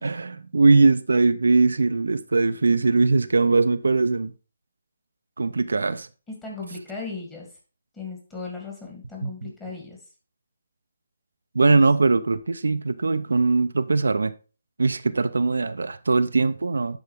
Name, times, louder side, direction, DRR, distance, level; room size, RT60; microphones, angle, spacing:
voice 1, 0.0-4.3 5.4-6.1 9.2-9.5 11.5-14.3 14.8-17.0, right 3 dB, 80° right, 0.5 m, -21 dB
voice 2, 6.3-7.5 7.9-10.0 11.7-11.8, left 4 dB, 15° left, 2.3 m, -36 dB
10.5 x 4.0 x 3.4 m
figure-of-eight pair, 150°, 0 cm